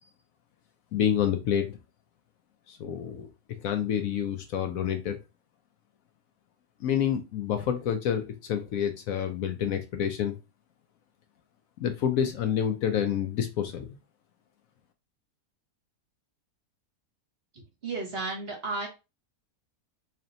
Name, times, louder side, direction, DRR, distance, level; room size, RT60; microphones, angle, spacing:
voice 1, 0.9-1.8 2.7-3.3 3.6-5.2 6.8-10.4 11.8-13.9, left 9 dB, 70° left, 6 dB, 1.0 m, -28 dB
voice 2, 17.8-18.9, right 3 dB, 45° right, 1 dB, 1.2 m, -33 dB
3.2 x 2.9 x 3.8 m, 0.26 s
omnidirectional pair, 1.6 m